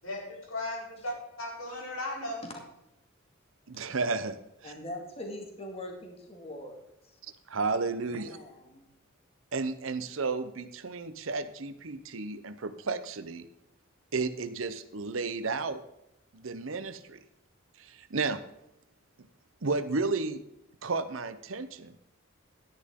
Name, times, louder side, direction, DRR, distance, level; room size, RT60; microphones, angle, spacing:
voice 1, 0.5-2.4, left 1 dB, 85° left, 4.1 m, -36 dB
voice 2, 3.7-4.4 4.6-4.7 7.5-8.4 9.5-13.5 14.1-15.8 16.3-17.2 17.8-18.4 19.2-19.3 19.6-20.4 20.8-22.0, right 4 dB, 75° right, 0.8 m, -32 dB
voice 3, 4.6-6.9 8.2-8.8, left 1 dB, 30° left, 2.2 m, -42 dB
11.5 x 10.0 x 3.7 m
head